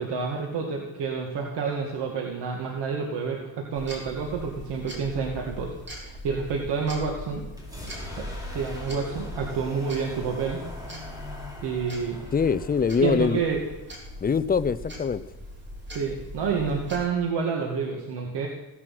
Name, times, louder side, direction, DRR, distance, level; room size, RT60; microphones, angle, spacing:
voice 1, 0.0-7.4 8.2-10.6 11.6-12.2 13.0-13.6 15.9-18.5, right 5 dB, 85° right, 0 dB, 2.3 m, -29 dB
sound 1, 3.7-17.1, equal, 25° right, 3.6 m, -41 dB
sound 2, 7.5-15.3, left 1 dB, 10° right, 4.1 m, -42 dB
voice 2, 12.3-13.4 14.2-15.2, left 6 dB, 25° left, 12 dB, 0.5 m, -23 dB
16.5 x 11.0 x 6.0 m, 1.1 s
cardioid pair, 150°, 40 cm